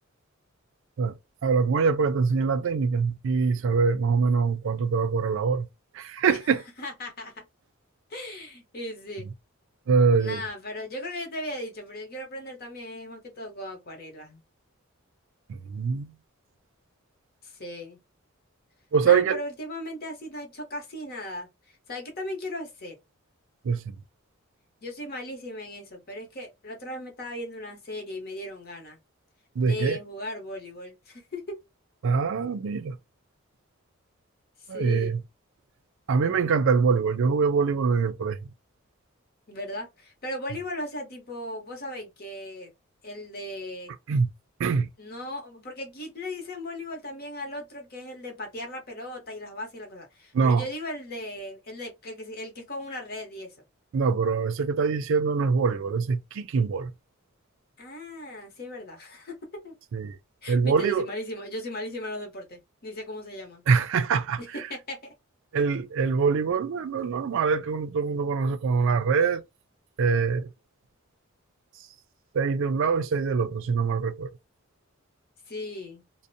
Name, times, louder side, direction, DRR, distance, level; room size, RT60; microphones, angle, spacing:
voice 1, 1.4-5.7 5.9-6.6 9.9-10.4 15.5-16.1 18.9-19.4 23.6-23.9 29.6-30.0 32.0-33.0 34.7-35.2 36.1-38.4 44.1-44.3 44.6-44.9 50.3-50.6 53.9-56.9 59.9-60.2 60.5-61.1 63.7-64.4 65.5-69.4 70.0-70.5 72.3-74.3, right 5 dB, 65° right, 0.4 m, -24 dB
voice 2, 6.3-7.4 8.1-9.3 10.2-14.4 17.4-18.0 19.0-23.0 24.8-29.0 29.6-31.6 34.6-35.2 39.5-42.7 43.0-43.9 45.0-53.5 57.8-59.7 60.4-63.6 64.4-65.1 75.5-76.0, left 1 dB, 50° left, 0.9 m, -37 dB
2.5 x 2.0 x 2.6 m
head